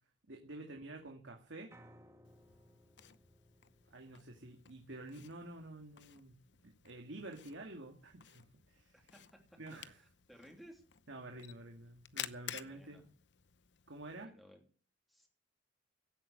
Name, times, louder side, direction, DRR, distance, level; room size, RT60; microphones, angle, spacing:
voice 1, 0.3-1.8 3.9-9.1 9.6-10.0 11.1-13.0 13.9-14.3, right 2 dB, 90° right, 2 dB, 2.2 m, -49 dB
Piano, 1.7-7.9, equal, 15° right, 1.9 m, -65 dB
Camera, 2.2-14.2, left 10 dB, 70° left, 0.8 m, -53 dB
voice 2, 10.0-10.8 12.6-13.0 14.2-14.6 15.1-15.3, equal, ahead, 1 dB, 2.9 m, -58 dB
16.5 x 8.6 x 6.5 m, 0.40 s
head